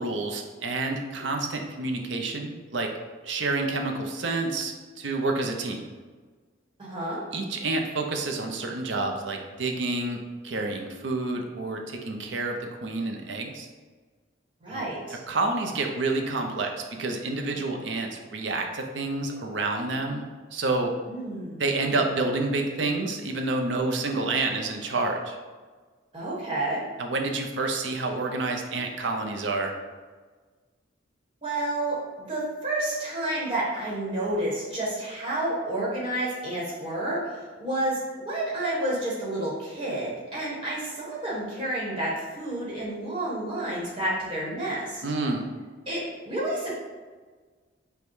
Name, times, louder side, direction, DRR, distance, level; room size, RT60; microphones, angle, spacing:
voice 1, 0.0-2.9 3.2-5.8 7.3-10.2 10.4-13.7 14.7-14.8 15.3-16.7 17.0-20.3 20.5-20.9 21.6-25.4 27.0-29.7 45.0-45.5, right 3 dB, 75° right, 3 dB, 0.6 m, -28 dB
voice 2, 6.8-7.2 14.6-15.2 21.1-21.6 26.1-26.8 31.4-38.0 38.2-45.0 45.9-46.8, right 1 dB, 25° right, -6 dB, 1.2 m, -30 dB
5.2 x 2.2 x 4.6 m, 1.4 s
head